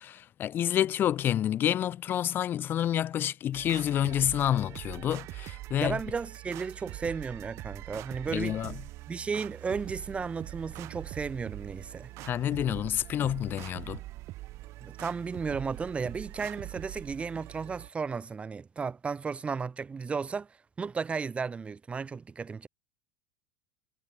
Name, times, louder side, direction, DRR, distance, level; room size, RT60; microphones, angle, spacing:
voice 1, 0.0-6.0 8.3-8.7 12.2-14.0, left 11 dB, 35° left, 0.7 m, -28 dB
sound 1, 3.5-17.9, right 18 dB, 55° right, 3.1 m, -43 dB
voice 2, 5.8-8.6 9.1-12.1 14.8-22.7, right 5 dB, 20° right, 5.1 m, -34 dB
supercardioid pair, 110°, 6 cm